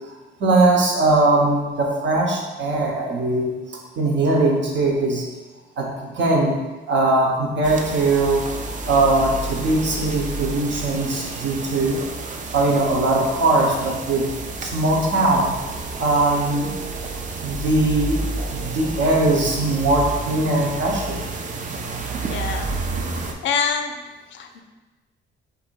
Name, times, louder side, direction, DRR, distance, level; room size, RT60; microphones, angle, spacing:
voice 1, 0.4-3.5 4.0-5.2 5.8-6.6 6.9-12.0 12.5-14.3 14.6-15.5 16.0-16.7 17.4-18.2 18.5-21.2, right 2 dB, 65° right, -1 dB, 1.0 m, -20 dB
sound 1, 7.6-23.3, right 3 dB, 40° right, 0.5 m, -30 dB
voice 2, 22.3-22.7 23.4-23.9 24.3-24.6, left 6 dB, 70° left, 6 dB, 0.5 m, -25 dB
3.6 x 2.6 x 4.6 m, 1.2 s
cardioid pair, 90°, 20 cm